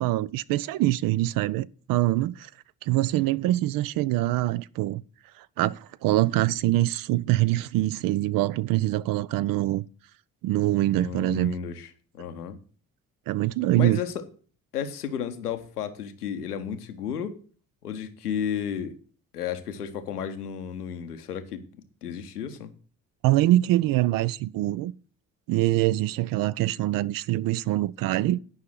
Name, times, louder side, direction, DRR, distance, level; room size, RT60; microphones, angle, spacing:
voice 1, 0.0-2.5 2.8-5.0 5.4-9.9 10.4-11.5 13.3-14.0 23.2-24.9 25.5-28.4, right 16 dB, 50° right, 0.5 m, -24 dB
voice 2, 10.9-11.9 12.1-12.6 13.7-14.1 14.7-17.4 17.8-19.0 19.3-21.7 22.0-22.7, left 8 dB, 85° left, 0.8 m, -33 dB
9.7 x 5.6 x 7.7 m
figure-of-eight pair, 40°, 46 cm